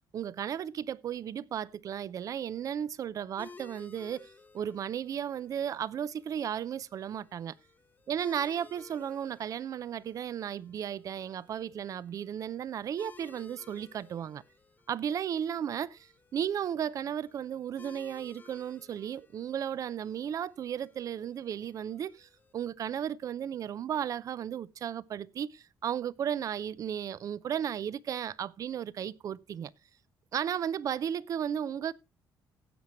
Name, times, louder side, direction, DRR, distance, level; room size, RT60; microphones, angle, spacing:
voice 1, 0.1-7.5 8.1-14.4 14.9-29.7 30.3-31.9, right 9 dB, 50° right, 0.5 m, -35 dB
sound 1, 3.4-22.5, left 4 dB, 25° left, 1.1 m, -57 dB
16.5 x 7.6 x 3.0 m
cardioid pair, 120°, 7 cm